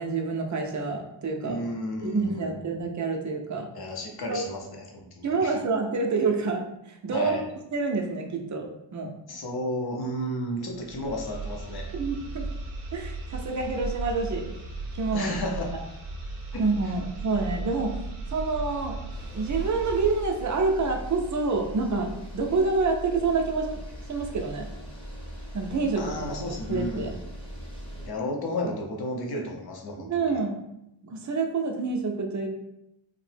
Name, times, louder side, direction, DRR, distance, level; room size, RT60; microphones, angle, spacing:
voice 1, 0.0-1.7 2.0-3.7 4.3-4.4 5.2-7.4 7.7-8.7 8.9-9.1 11.9-12.5 12.9-14.5 14.9-15.3 15.7-15.8 16.6-17.9 18.3-19.0 19.3-23.8 24.1-24.7 25.5-26.0 26.7-27.1 30.0-30.6 31.0-32.5, right 4 dB, 40° right, 2 dB, 0.4 m, -27 dB
voice 2, 1.4-2.5 3.7-5.5 7.1-7.4 9.3-11.8 15.1-15.6 16.5-16.9 26.0-27.2 27.9-30.4, left 1 dB, 50° left, 0 dB, 0.6 m, -33 dB
sound 1, 10.7-20.4, right 3 dB, 70° right, 0.7 m, -36 dB
sound 2, 19.1-28.1, equal, 10° left, 0.7 m, -39 dB
2.7 x 2.0 x 3.2 m, 0.83 s
wide cardioid pair, 130°, 50 cm